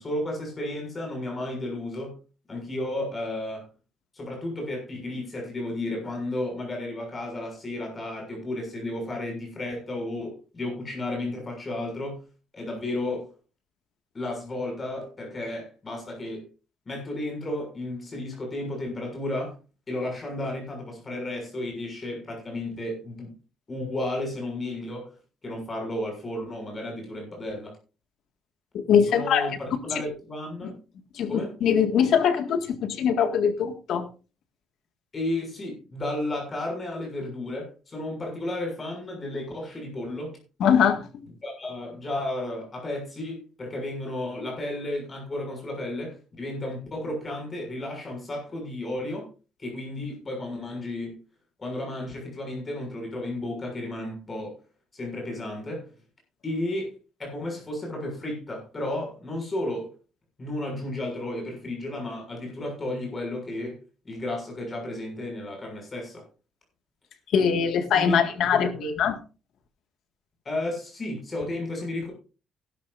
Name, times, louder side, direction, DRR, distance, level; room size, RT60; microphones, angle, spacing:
voice 1, 0.0-2.2 2.5-3.7 4.1-12.2 12.5-13.3 14.1-16.5 16.9-19.5 19.9-23.3 23.7-25.1 25.4-27.8 29.1-30.7 31.3-31.5 35.1-40.4 41.4-49.3 49.6-51.2 51.6-54.5 54.9-55.9 56.4-56.9 57.2-59.9 60.4-63.8 64.0-66.3 67.9-68.2 68.5-69.1 70.4-72.1, left 1 dB, 20° left, 2 dB, 6.6 m, -33 dB
voice 2, 28.7-29.5 30.6-30.7 31.2-34.1 40.6-41.1 67.3-68.7 69.0-69.2, left 7 dB, 60° left, 7 dB, 1.9 m, -22 dB
16.5 x 12.0 x 2.6 m, 0.33 s
cardioid pair, 170°, 0 cm